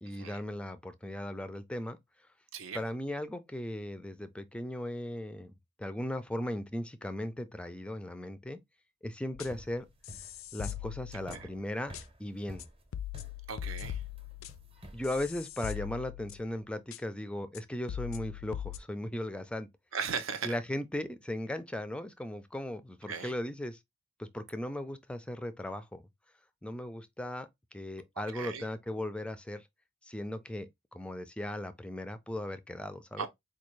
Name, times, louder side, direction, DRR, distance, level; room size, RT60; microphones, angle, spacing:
voice 1, 0.0-2.0 2.7-5.5 5.8-8.6 9.0-9.9 10.5-11.9 12.2-12.7 14.9-19.7 20.4-23.8 24.2-26.0 26.6-29.6 30.1-33.3, left 1 dB, 5° left, 0.4 m, -37 dB
voice 2, 2.5-2.8 11.4-11.5 13.5-14.0 19.9-20.6 23.1-23.3 28.3-28.6 33.2-33.3, right 6 dB, 80° right, 0.8 m, -37 dB
sound 1, 9.3-9.7 10.0-11.6 11.9-12.0 12.6-12.7 12.9-16.6 16.9-17.0 17.5-17.6 17.9-18.8, left 11 dB, 80° left, 0.3 m, -41 dB
sound 2, 9.4-15.9, right 1 dB, 30° right, 0.8 m, -50 dB
4.3 x 2.3 x 3.1 m
head